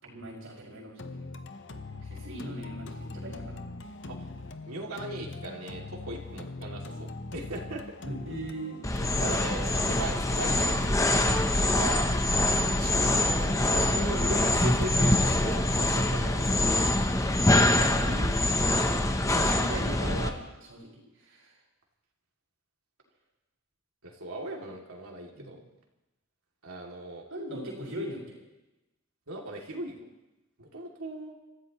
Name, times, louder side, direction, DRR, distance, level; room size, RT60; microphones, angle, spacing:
voice 1, 0.0-1.4 2.0-3.7 8.0-8.8 9.4-9.6 12.8-13.0 13.3-14.0 17.6-18.4 19.3-21.5 25.3-25.5 27.3-28.4, right 1 dB, 65° right, -4 dB, 5.8 m, -40 dB
sound 1, 1.0-19.0, left 2 dB, 55° left, 0.8 m, -41 dB
voice 2, 4.7-7.8 9.2-10.9 11.6-12.1 12.6-16.7 24.0-25.6 26.6-27.2 29.3-30.0 30.6-31.3, right 2 dB, 85° right, 0 dB, 2.7 m, -39 dB
sound 2, 8.8-20.3, left 1 dB, 15° left, 0.8 m, -25 dB
27.0 x 15.0 x 3.1 m, 1.0 s
head